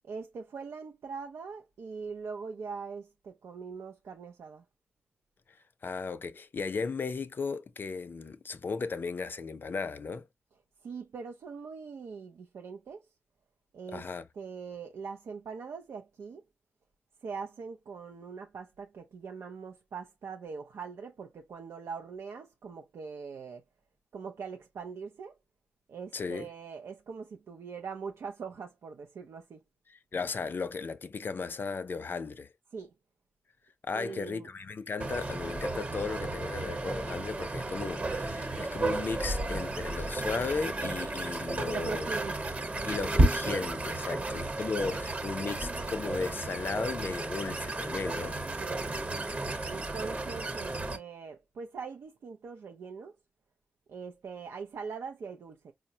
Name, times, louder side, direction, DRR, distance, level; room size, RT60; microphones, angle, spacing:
voice 1, 0.0-4.6 10.5-13.1 13.7-16.4 17.2-23.6 24.1-25.4 25.9-29.6 32.7-32.9 33.9-34.5 41.6-42.6 44.0-44.5 48.6-49.2 49.7-53.2 53.9-55.7, right 5 dB, 90° right, 0.5 m, -42 dB
voice 2, 5.5-10.3 13.9-14.3 26.1-26.5 29.9-32.5 33.8-42.1 42.9-48.4, left 4 dB, 50° left, 0.5 m, -35 dB
sound 1, 35.0-51.0, right 2 dB, 35° right, 1.0 m, -32 dB
4.8 x 2.1 x 2.7 m
wide cardioid pair, 90°, 4 cm